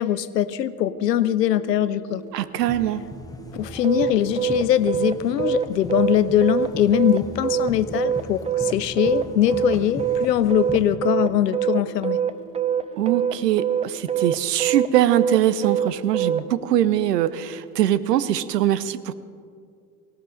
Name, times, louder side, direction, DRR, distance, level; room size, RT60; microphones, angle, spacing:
voice 1, 0.0-2.2 3.5-12.2, left 11 dB, 85° left, 15 dB, 0.7 m, -22 dB
sound 1, 0.8-18.5, right 12 dB, 45° right, 4.3 m, -45 dB
voice 2, 2.3-3.0 13.0-19.1, right 11 dB, 80° right, 16 dB, 0.7 m, -22 dB
sound 2, 2.6-11.0, left 1 dB, 10° left, 1.1 m, -39 dB
sound 3, 3.8-16.4, right 9 dB, 15° right, 0.5 m, -24 dB
18.0 x 17.5 x 3.9 m, 2.3 s
hypercardioid pair, 75°, 48 cm